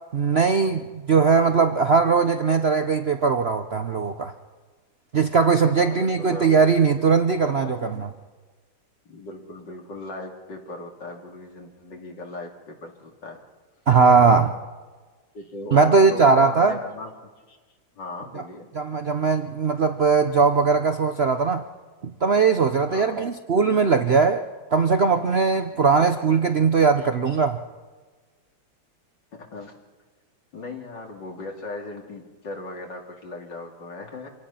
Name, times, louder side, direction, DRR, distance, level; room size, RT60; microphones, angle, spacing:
voice 1, 0.1-4.3 5.1-8.1 13.9-14.5 15.7-16.8 18.3-18.4 18.7-21.6 22.0-27.6, right 5 dB, 75° right, 7 dB, 0.5 m, -20 dB
voice 2, 5.6-6.5 7.6-7.9 9.0-13.4 15.3-17.1 17.5-17.6 17.9-18.7 22.9-23.2 29.5-29.7 30.5-34.3, left 2 dB, 60° left, 1 dB, 3.2 m, -38 dB
26.5 x 18.0 x 5.7 m, 1.3 s
omnidirectional pair, 2.3 m